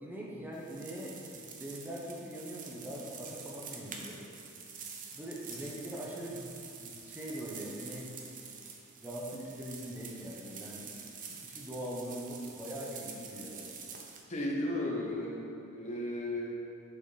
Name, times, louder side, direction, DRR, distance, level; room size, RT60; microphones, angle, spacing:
voice 1, 0.0-4.2 5.1-6.5 6.8-8.2 9.0-10.9 11.4-13.7, right 1 dB, 10° right, -5 dB, 1.0 m, -42 dB
sound 1, 0.5-14.2, right 5 dB, 40° right, 0.8 m, -47 dB
voice 2, 14.3-16.5, left 1 dB, 35° left, -3 dB, 1.2 m, -35 dB
7.7 x 7.2 x 4.1 m, 2.6 s
head